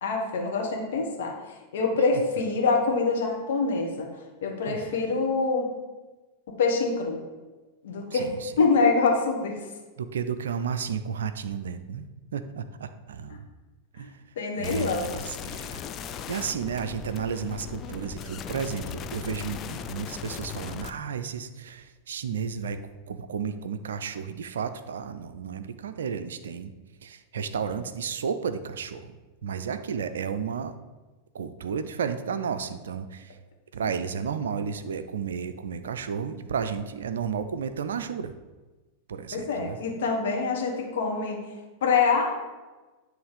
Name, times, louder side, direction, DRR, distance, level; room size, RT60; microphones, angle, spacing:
voice 1, 0.0-5.7 6.5-7.2 7.8-8.3 8.6-9.6 13.3-13.4 14.0-14.1 14.4-15.2 39.3-41.4 41.8-42.3, left 4 dB, 60° left, 1 dB, 1.3 m, -25 dB
voice 2, 8.1-8.5 10.0-12.1 12.3-13.4 13.9-14.2 14.5-15.8 16.3-22.8 23.1-26.7 27.0-29.1 29.4-30.7 31.3-33.4 33.7-38.3 39.1-39.8, right 6 dB, 65° right, 10 dB, 0.4 m, -32 dB
sound 1, 14.6-20.9, left 8 dB, 30° left, 0.4 m, -38 dB
9.5 x 3.2 x 4.9 m, 1.2 s
figure-of-eight pair, 90°, 0 cm